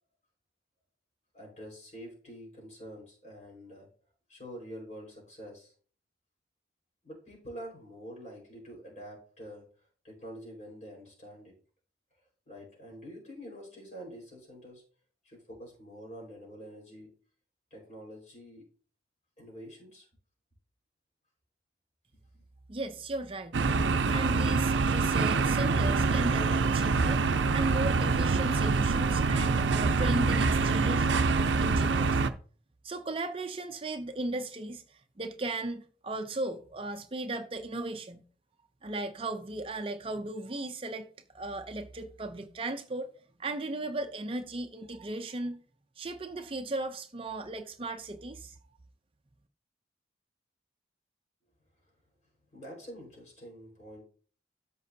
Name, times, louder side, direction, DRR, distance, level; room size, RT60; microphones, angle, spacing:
voice 1, 1.3-3.9 4.3-5.7 7.0-9.6 10.0-11.6 12.5-14.8 15.2-17.1 17.7-18.7 19.4-20.1 52.5-54.0, equal, 40° left, 4.6 m, -46 dB
voice 2, 22.7-23.6 24.1-27.2 27.5-32.2 32.8-38.2 38.8-41.1 41.3-43.1 43.4-45.6 46.0-48.6, right 2 dB, 30° right, 0.6 m, -36 dB
sound 1, 23.5-32.3, right 4 dB, 90° right, 0.6 m, -25 dB
13.5 x 5.3 x 2.7 m
head